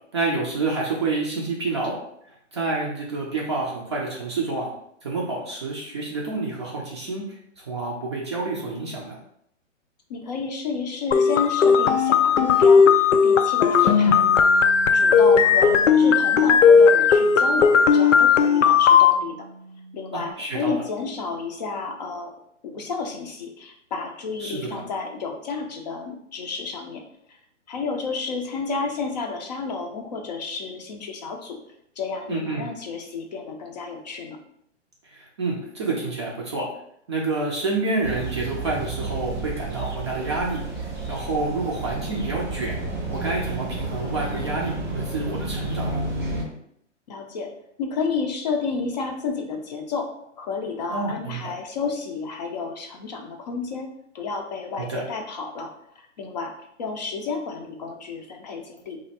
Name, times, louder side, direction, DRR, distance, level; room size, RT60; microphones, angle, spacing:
voice 1, 0.1-2.0 2.5-4.7 5.0-9.2 13.8-14.2 20.1-20.8 24.4-24.8 32.3-32.7 35.0-36.7 37.1-40.6 41.1-42.8 43.1-46.0 50.9-51.5 54.8-55.0, right 3 dB, 25° right, -2 dB, 0.4 m, -28 dB
voice 2, 10.1-14.2 14.9-19.5 19.9-22.3 22.6-27.0 27.3-27.4 27.7-31.6 32.0-34.4 47.1-47.5 47.8-50.1 50.4-53.9 54.1-55.7 56.0-56.5 56.8-59.0, left 4 dB, 35° left, 3 dB, 0.5 m, -31 dB
sound 1, 11.1-19.1, left 6 dB, 85° left, 0.5 m, -16 dB
Bass guitar, 14.1-20.3, right 3 dB, 85° right, 0.5 m, -39 dB
sound 2, 38.0-46.4, right 2 dB, 5° right, 0.8 m, -31 dB
3.0 x 2.6 x 4.1 m, 0.72 s
hypercardioid pair, 145°, 37 cm